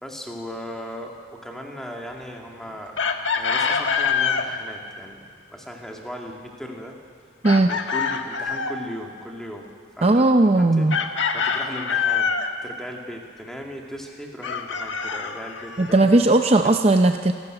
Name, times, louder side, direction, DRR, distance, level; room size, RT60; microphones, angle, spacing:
voice 1, 0.0-3.0 3.3-5.2 5.5-7.0 7.7-9.7 10.0-10.3 10.6-12.3 12.6-16.2 16.6-16.8, equal, ahead, 0 dB, 2.3 m, -37 dB
Chicken rooster, 3.0-4.5 7.4-8.8 10.9-12.5 14.4-16.0, left 6 dB, 85° left, 1.5 m, -25 dB
voice 2, 10.0-11.0 15.8-17.3, right 2 dB, 35° right, 6 dB, 0.6 m, -17 dB
27.5 x 13.0 x 9.0 m, 2.1 s
head